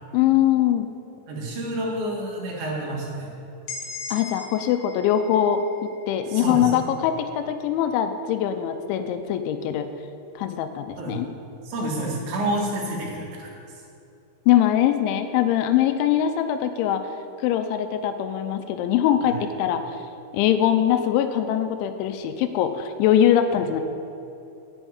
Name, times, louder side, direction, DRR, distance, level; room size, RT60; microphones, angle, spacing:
voice 1, 0.1-0.9 4.1-5.6 6.1-9.9 10.4-11.3 14.5-17.1 17.4-19.8 20.3-23.8, left 10 dB, 85° left, 8 dB, 2.9 m, -22 dB
voice 2, 1.3-3.3 6.3-6.7 11.0-11.2 11.6-13.5 19.2-19.4, right 1 dB, 75° right, -2 dB, 4.0 m, -29 dB
sound 1, 3.7-7.5, left 4 dB, 65° left, 2.4 m, -40 dB
9.0 x 7.1 x 8.7 m, 2.7 s
omnidirectional pair, 5.4 m